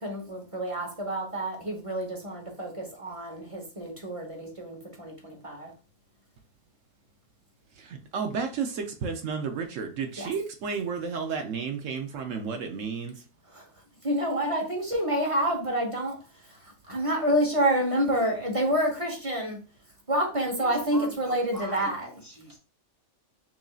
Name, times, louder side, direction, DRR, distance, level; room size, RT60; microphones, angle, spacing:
voice 1, 0.0-5.7 10.2-10.3 13.5-13.6 14.0-16.2 16.9-19.6 20.1-22.1, right 1 dB, 25° right, 0 dB, 1.0 m, -28 dB
voice 2, 7.8-13.1, right 5 dB, 75° right, 5 dB, 1.0 m, -32 dB
voice 3, 20.6-22.6, right 1 dB, 20° left, -2 dB, 1.2 m, -43 dB
6.0 x 2.6 x 2.3 m, 0.33 s
omnidirectional pair, 1.4 m